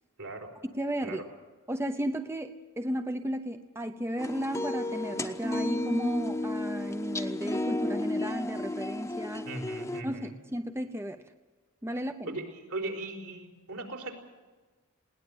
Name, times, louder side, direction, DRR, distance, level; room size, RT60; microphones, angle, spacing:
voice 1, 0.2-0.5 1.0-1.3 9.4-10.3 12.2-14.1, right 2 dB, 70° right, 2 dB, 4.4 m, -38 dB
voice 2, 0.7-1.2 1.7-9.5 10.0-11.3 11.8-12.3, equal, 10° right, 8 dB, 0.7 m, -34 dB
sound 1, 4.2-10.0, left 1 dB, 15° left, 1.0 m, -33 dB
21.0 x 18.5 x 8.0 m, 1.3 s
head